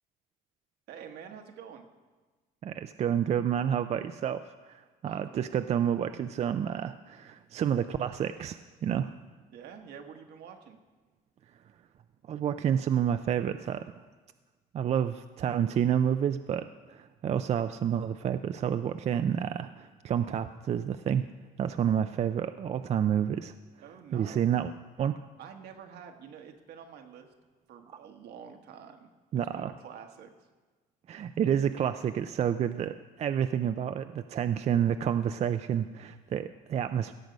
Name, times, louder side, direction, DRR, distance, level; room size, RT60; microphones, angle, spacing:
voice 1, 0.9-1.9 5.0-5.3 9.5-10.8 23.8-24.4 25.4-27.3 27.7-29.1 29.5-30.3, right 7 dB, 75° right, 4 dB, 1.3 m, -47 dB
voice 2, 2.6-9.1 12.3-13.8 14.7-21.3 21.6-23.5 24.1-24.7 25.0-25.1 29.3-29.7 31.1-37.1, right 9 dB, 40° right, 10 dB, 0.4 m, -29 dB
17.0 x 6.7 x 5.2 m, 1.3 s
cardioid pair, 110°, 17 cm